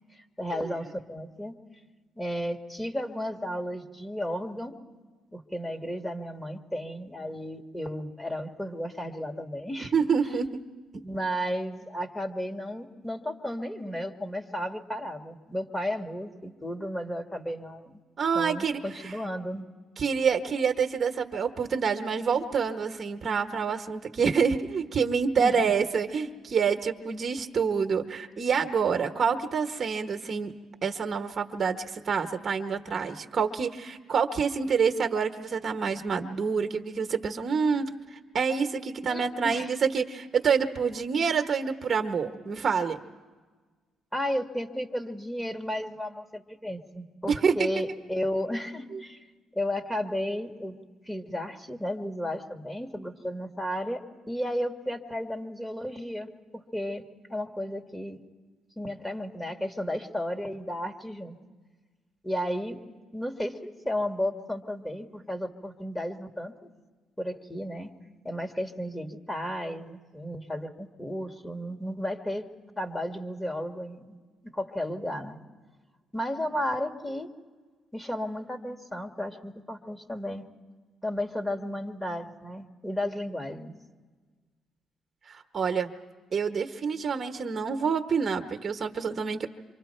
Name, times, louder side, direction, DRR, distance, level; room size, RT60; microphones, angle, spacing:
voice 1, 0.1-1.6 2.2-4.8 5.3-9.9 11.0-18.0 18.3-19.7 25.4-25.6 39.1-39.7 44.1-49.2 49.5-50.8 51.1-58.2 58.8-61.4 62.2-62.8 63.1-66.7 67.2-67.9 68.2-72.4 72.8-74.2 74.4-75.4 76.1-77.3 77.9-80.5 81.0-83.7, equal, 10° left, 5 dB, 2.0 m, -33 dB
voice 2, 9.8-10.6 18.2-19.2 20.0-30.5 30.8-43.0 47.3-47.7 48.9-49.0 85.3-85.9 86.3-89.5, right 6 dB, 45° right, 6 dB, 1.3 m, -27 dB
27.0 x 25.0 x 4.5 m, 1.4 s
supercardioid pair, 70°, 0 cm